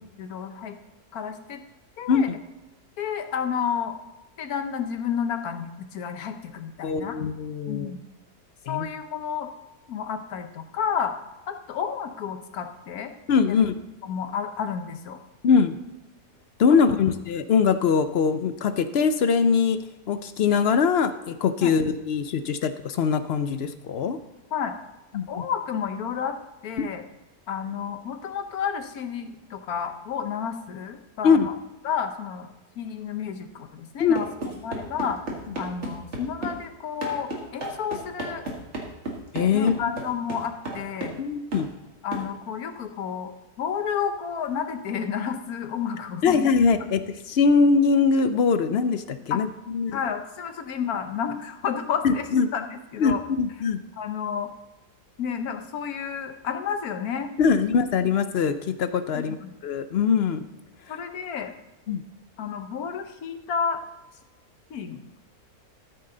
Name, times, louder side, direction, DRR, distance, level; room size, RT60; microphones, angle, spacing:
voice 1, 0.2-0.8 1.1-1.6 2.0-2.3 3.0-3.9 4.4-7.2 7.7-8.0 8.7-9.5 9.9-11.1 11.5-13.1 13.5-13.6 14.0-15.2 21.6-21.7 24.5-24.8 25.3-26.4 26.6-27.0 27.5-31.5 31.8-32.5 32.8-34.3 34.6-35.2 35.6-38.5 39.5-41.2 42.0-46.4 49.3-49.4 49.9-52.3 52.5-53.2 54.0-54.5 55.2-57.3 59.2-59.5 60.9-61.5 62.4-63.8 64.7-65.0, left 7 dB, 80° left, 7 dB, 1.4 m, -31 dB
voice 2, 6.8-7.9 8.7-8.9 13.3-13.8 15.4-15.8 16.6-19.8 20.1-24.2 25.1-25.4 26.8-26.9 31.2-31.5 34.0-34.2 39.3-40.0 41.2-41.7 46.2-47.0 47.3-49.5 49.7-50.0 52.0-52.5 53.0-53.8 57.4-59.3 59.6-60.4 61.9-62.0, left 5 dB, 60° left, 11 dB, 0.7 m, -22 dB
sound 1, 34.1-36.6 37.0-41.2 41.5-41.7 42.1-42.3, right 2 dB, 50° right, 2.1 m, -33 dB
13.0 x 6.7 x 3.8 m, 1.1 s
omnidirectional pair, 1.6 m